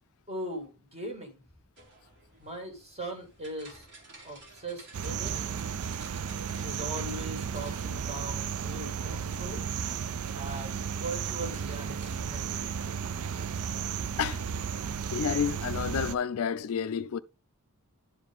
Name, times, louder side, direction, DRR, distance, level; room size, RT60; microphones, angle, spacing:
voice 1, 0.3-1.4 2.4-3.9 4.2-5.4 6.6-9.7 10.3-12.9, right 1 dB, 30° right, 2.3 m, -40 dB
sound 1, 1.8-12.9, right 2 dB, 55° right, 2.7 m, -53 dB
sound 2, 4.9-16.1, right 7 dB, 75° right, 0.4 m, -34 dB
voice 2, 15.1-17.2, left 7 dB, 70° left, 0.4 m, -30 dB
10.5 x 4.9 x 3.5 m
head